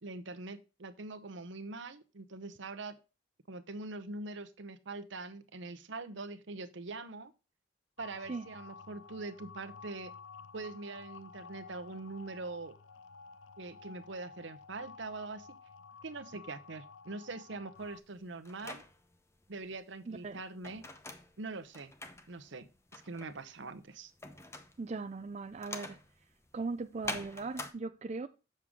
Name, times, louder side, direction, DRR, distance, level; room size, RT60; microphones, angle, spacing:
voice 1, 0.0-3.0 3.5-7.3 8.0-10.1 10.5-12.7 13.6-15.5 16.0-18.8 19.5-20.9 21.4-21.9 22.3-22.7 22.9-24.1, right 3 dB, 65° right, 0.8 m, -43 dB
sound 1, 8.0-18.0, left 5 dB, 70° left, 0.5 m, -52 dB
sound 2, 17.8-27.7, left 2 dB, 15° left, 0.7 m, -46 dB
voice 2, 20.1-20.4 24.8-26.0 26.5-28.3, right 3 dB, 35° right, 0.4 m, -39 dB
7.4 x 6.7 x 3.6 m
head